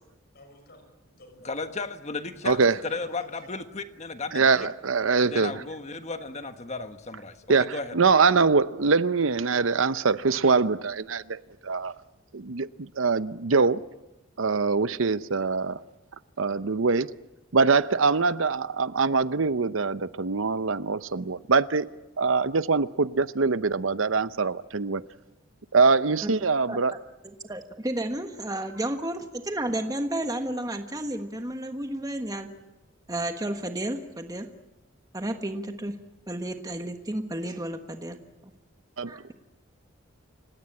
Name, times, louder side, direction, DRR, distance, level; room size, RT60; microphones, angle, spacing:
voice 1, 0.3-1.5 2.4-3.5, left 1 dB, 55° left, 6.2 m, -50 dB
voice 2, 1.4-4.7 5.1-8.0, left 3 dB, 35° left, 1.4 m, -35 dB
voice 3, 4.3-5.5 7.5-11.4 11.6-11.9 12.3-13.8 14.4-15.8 16.4-17.2 17.5-21.9 22.2-25.0 25.7-26.9 39.0-39.3, right 4 dB, 85° right, 0.8 m, -23 dB
voice 4, 27.2-32.5 33.1-34.5 35.1-36.0 36.3-38.2 39.1-39.3, right 1 dB, 20° right, 1.4 m, -32 dB
29.5 x 17.5 x 8.7 m
head